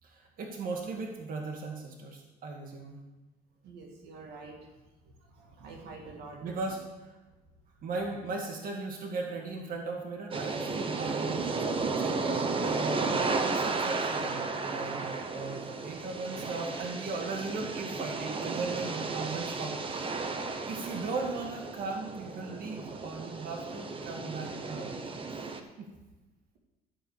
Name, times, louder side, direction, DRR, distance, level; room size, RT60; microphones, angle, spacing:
voice 1, 0.0-3.0 6.4-6.8 7.8-20.1 20.7-24.9 25.8-25.9, right 3 dB, 55° right, 1 dB, 1.8 m, -37 dB
voice 2, 3.6-4.7 5.2-6.5, right 3 dB, 80° right, 1 dB, 2.0 m, -47 dB
sound 1, 10.3-25.6, right 3 dB, 30° right, 1.0 m, -34 dB
12.5 x 4.7 x 7.1 m, 1.1 s
cardioid pair, 110°, 17 cm